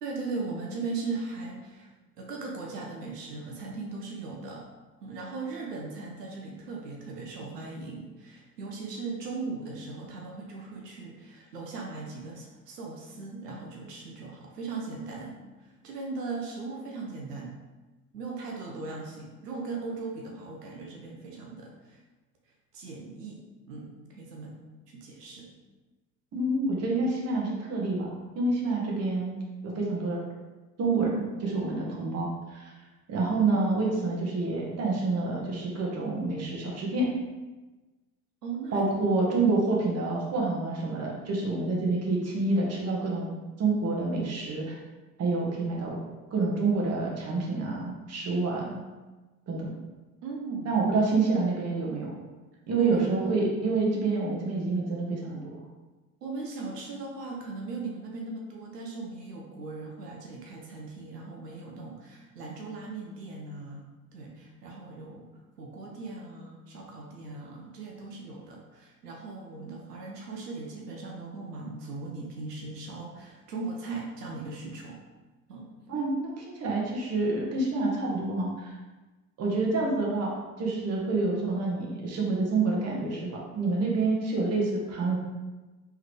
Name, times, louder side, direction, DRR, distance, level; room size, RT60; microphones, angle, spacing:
voice 1, 0.0-1.9 2.2-4.6 5.0-17.6 18.1-22.0 22.7-23.4 23.7-24.6 24.9-25.5 38.4-39.1 50.2-50.7 52.7-53.8 56.2-63.9 64.1-65.3 65.6-75.0 75.5-75.7, right 3 dB, 85° right, -1 dB, 0.7 m, -38 dB
voice 2, 26.3-29.4 29.6-30.2 30.8-32.7 33.1-37.1 38.7-44.8 45.2-46.0 46.3-48.8 49.5-49.7 50.6-52.1 52.7-55.4 75.9-78.7 79.4-80.3 80.6-85.2, right 3 dB, 35° right, -3 dB, 1.2 m, -28 dB
3.6 x 3.3 x 3.2 m, 1.2 s
hypercardioid pair, 75°, 46 cm